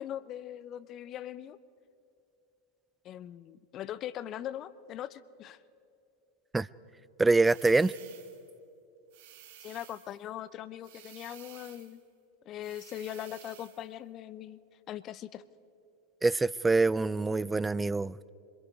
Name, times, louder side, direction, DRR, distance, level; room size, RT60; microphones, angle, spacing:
voice 1, 0.0-1.6 3.0-5.6 9.6-12.0 12.5-14.6 14.9-15.4, left 11 dB, 40° left, 0.6 m, -40 dB
voice 2, 7.2-7.9 16.2-18.3, right 3 dB, 10° right, 0.4 m, -25 dB
sound 1, 7.4-8.5 9.1-10.2 10.8-12.0 12.6-13.9, right 11 dB, 60° right, 1.6 m, -53 dB
25.0 x 22.0 x 4.7 m
hypercardioid pair, 90°, 0 cm